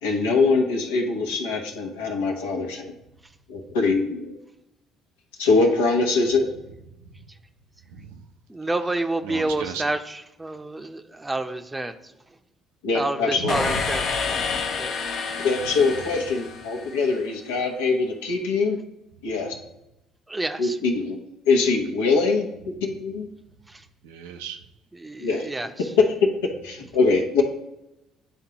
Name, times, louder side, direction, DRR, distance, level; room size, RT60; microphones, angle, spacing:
voice 1, 0.0-2.9 3.5-4.4 5.4-6.5 12.8-13.7 15.4-18.8 19.2-19.6 20.6-21.2 21.5-23.3 25.2-25.5 26.0-27.4, left 4 dB, 85° left, 2 dB, 0.9 m, -23 dB
voice 2, 7.9-8.2 9.2-9.9 13.0-13.1 13.4-13.9 24.0-24.7, right 6 dB, 80° right, 6 dB, 0.6 m, -35 dB
voice 3, 8.5-11.9 12.9-14.1 14.8-15.0 20.3-20.8 25.0-25.7, right 2 dB, 15° right, 8 dB, 0.7 m, -28 dB
sound 1, 13.5-17.3, left 5 dB, 60° left, 0.8 m, -29 dB
10.0 x 3.6 x 2.9 m, 0.90 s
hypercardioid pair, 55°, 0 cm